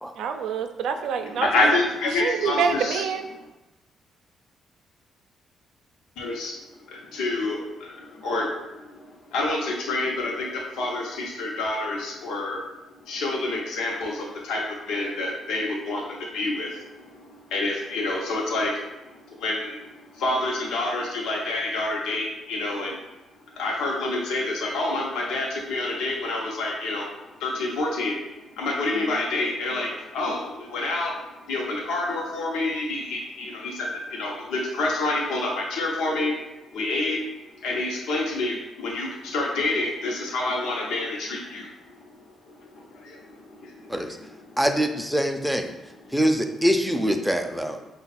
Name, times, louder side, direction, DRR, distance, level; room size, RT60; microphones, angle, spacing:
voice 1, 0.2-1.5 2.2-3.2 28.9-29.2, right 7 dB, 80° right, 6 dB, 0.4 m, -26 dB
voice 2, 1.2-3.1 6.2-23.0 23.6-27.1 27.4-31.2 31.5-36.4 36.7-37.2 37.6-42.1 42.4-44.6 46.0-46.1 47.8-47.9, left 2 dB, 85° left, -2 dB, 0.8 m, -28 dB
voice 3, 44.6-45.7 46.1-47.8, equal, ahead, 5 dB, 0.5 m, -24 dB
5.2 x 2.3 x 4.1 m, 1.0 s
cardioid pair, 90°, 0 cm